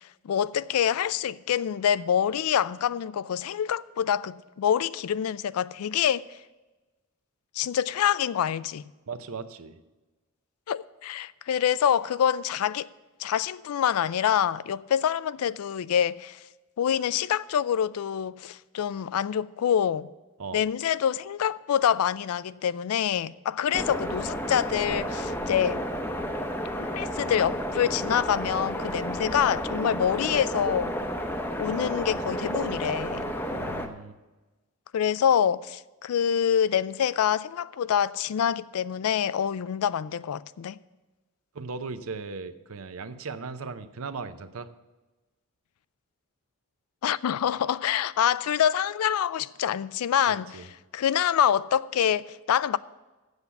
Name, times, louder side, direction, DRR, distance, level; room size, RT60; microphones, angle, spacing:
voice 1, 0.2-6.2 7.6-8.8 10.7-12.9 13.2-16.4 16.8-20.1 20.5-25.8 26.8-30.9 31.6-33.2 34.9-40.8 47.0-50.6 50.9-52.8, left 9 dB, 85° left, 0.3 m, -26 dB
voice 2, 9.1-9.8 20.4-20.6 33.5-34.2 41.5-44.7 50.5-50.6, right 4 dB, 75° right, 0.6 m, -37 dB
sound 1, 23.7-33.9, equal, 10° left, 0.6 m, -31 dB
8.0 x 7.0 x 8.1 m
head